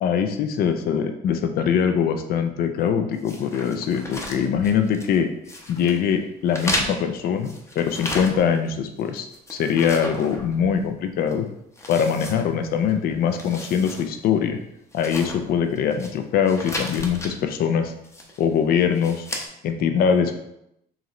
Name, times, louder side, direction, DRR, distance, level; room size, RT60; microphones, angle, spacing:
voice 1, 0.0-5.3 5.7-11.5 11.9-14.6 14.9-17.9 18.4-19.3 19.6-20.3, left 7 dB, 60° left, 6 dB, 0.5 m, -22 dB
sound 1, 3.2-5.2 5.4-6.0 6.5-8.7 9.0-10.9 11.3-11.4 11.8-12.9 13.2-14.1 14.4-14.5 14.9-16.1 16.5-17.3 18.0-18.5 18.9-19.5, left 1 dB, 15° left, 0.7 m, -34 dB
4.8 x 3.2 x 3.0 m, 0.81 s
cardioid pair, 110°, 17 cm